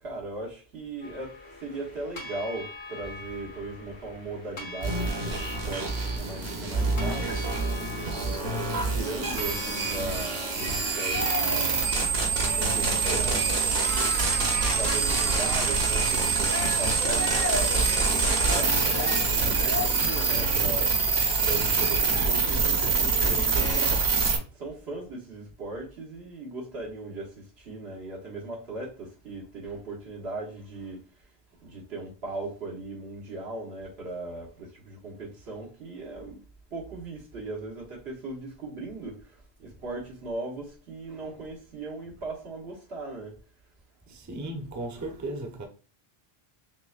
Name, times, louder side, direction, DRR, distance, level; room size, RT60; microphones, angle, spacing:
voice 1, 0.0-7.4 8.1-11.7 12.3-13.6 14.6-21.0 21.4-24.0 24.6-31.0 31.6-36.4 36.7-39.2 39.6-43.3, right 2 dB, 85° right, 1.4 m, -38 dB
sound 1, 1.0-10.1, left 2 dB, 85° left, 1.8 m, -43 dB
sound 2, 4.8-24.4, right 4 dB, 65° right, 1.3 m, -25 dB
sound 3, 11.1-11.8 12.2-15.8 16.5-19.8, left 2 dB, 20° left, 0.6 m, -35 dB
voice 2, 44.1-45.7, right 2 dB, 20° right, 0.6 m, -36 dB
5.9 x 2.2 x 2.4 m
omnidirectional pair, 1.1 m